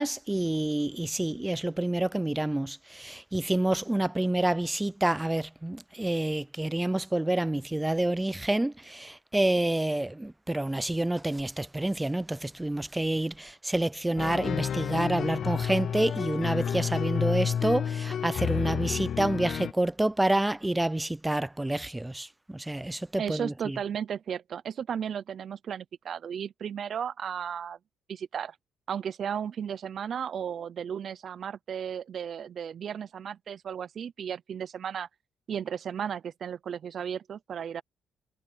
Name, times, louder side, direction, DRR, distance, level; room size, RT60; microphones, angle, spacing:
voice 1, 0.0-23.8, right 1 dB, 10° right, 0.5 m, -28 dB
sound 1, 14.2-19.7, left 8 dB, 60° left, 0.5 m, -30 dB
voice 2, 23.2-27.8 28.1-28.5 28.9-35.1 35.5-37.8, right 8 dB, 55° right, 0.7 m, -34 dB
cardioid pair, 90°, 0 cm